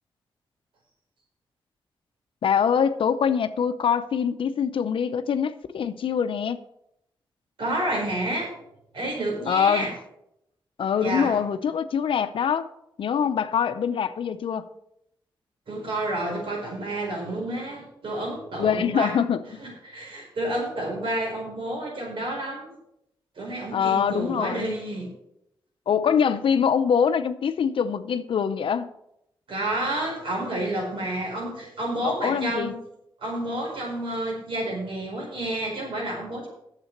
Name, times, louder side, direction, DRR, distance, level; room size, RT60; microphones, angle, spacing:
voice 1, 2.4-6.6 9.5-9.9 10.8-12.7 13.0-14.7 18.6-19.6 23.7-24.8 25.9-28.9 32.0-32.8, left 7 dB, 75° left, 0.6 m, -24 dB
voice 2, 7.6-8.6 8.9-9.9 11.0-11.4 15.7-19.1 19.6-22.8 23.4-25.1 29.5-32.7 33.2-36.5, right 1 dB, 75° right, 4.7 m, -30 dB
8.9 x 7.5 x 6.6 m
cardioid pair, 65°, 9 cm